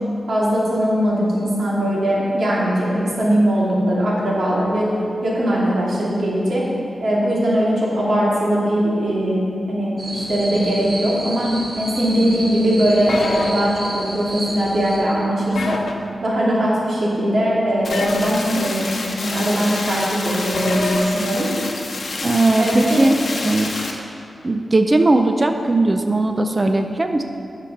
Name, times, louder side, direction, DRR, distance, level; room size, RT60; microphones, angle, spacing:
voice 1, 0.3-4.9 5.2-6.6 7.0-15.8 16.2-18.9 19.2-21.5 22.6-23.0, equal, 65° right, -6 dB, 2.6 m, -20 dB
sound 1, 10.0-15.0, right 1 dB, 45° right, 1.8 m, -31 dB
sound 2, 13.1-13.5 15.5-15.9 17.9-18.4 20.5-21.0, left 3 dB, 85° left, 0.8 m, -25 dB
sound 3, 17.8-23.9, left 3 dB, 60° left, 1.0 m, -28 dB
voice 2, 22.2-23.1 23.4-23.7 24.4-27.2, right 2 dB, 25° right, 5 dB, 0.4 m, -18 dB
10.0 x 6.8 x 5.8 m, 2.6 s
wide cardioid pair, 160°, 0 cm